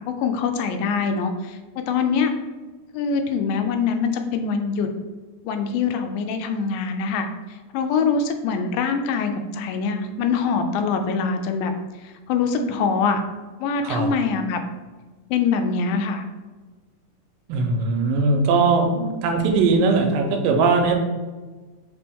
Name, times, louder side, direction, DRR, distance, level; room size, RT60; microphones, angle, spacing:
voice 1, 0.0-2.3 2.9-4.9 5.4-7.3 7.7-11.7 12.0-13.2 13.6-14.6 15.3-16.3, left 5 dB, 85° left, 6 dB, 2.3 m, -24 dB
voice 2, 17.5-21.0, right 3 dB, 85° right, 4 dB, 2.2 m, -20 dB
5.2 x 2.9 x 3.5 m, 1.3 s
omnidirectional pair, 4.0 m